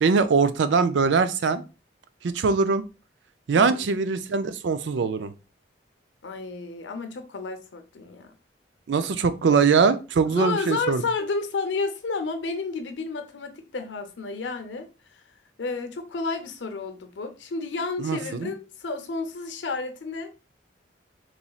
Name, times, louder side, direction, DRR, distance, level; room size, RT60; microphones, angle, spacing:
voice 1, 0.0-1.6 2.2-2.8 3.5-5.3 8.9-11.0 18.0-18.5, right 5 dB, 80° right, 0.4 m, -22 dB
voice 2, 3.6-3.9 6.2-8.3 9.0-9.1 10.3-14.9 15.6-20.3, left 4 dB, 90° left, 0.7 m, -31 dB
4.0 x 3.0 x 2.3 m
head